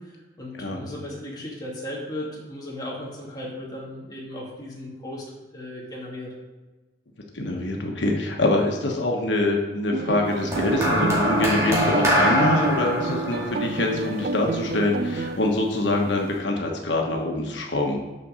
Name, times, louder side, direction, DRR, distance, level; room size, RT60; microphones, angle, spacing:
voice 1, 0.0-6.3 12.0-12.1, left 1 dB, 20° left, -4 dB, 2.0 m, -36 dB
voice 2, 7.3-18.0, left 2 dB, 90° left, 1 dB, 1.2 m, -24 dB
sound 1, 9.9-15.4, right 4 dB, 55° right, 0.4 m, -29 dB
sound 2, 10.5-14.9 15.9-16.1, equal, 15° right, 2.1 m, -24 dB
6.7 x 5.4 x 6.2 m, 1.2 s
head